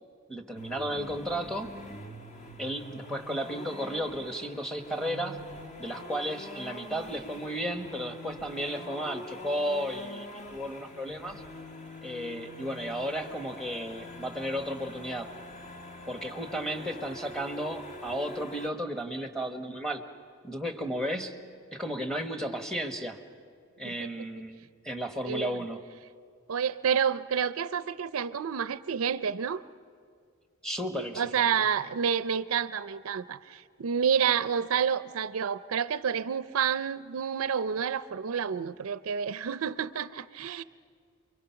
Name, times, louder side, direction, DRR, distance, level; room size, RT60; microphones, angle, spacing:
voice 1, 0.3-1.7 2.6-5.4 5.8-11.4 12.0-15.3 16.1-20.0 20.4-21.4 21.7-23.2 23.8-25.8 30.6-31.5, equal, 5° left, 5 dB, 1.2 m, -34 dB
sound 1, 0.6-18.7, left 1 dB, 35° left, 1.3 m, -44 dB
voice 2, 23.8-24.3 25.3-25.6 26.5-29.6 31.1-40.6, right 7 dB, 80° right, 14 dB, 0.5 m, -29 dB
28.5 x 23.0 x 5.8 m, 2.1 s
head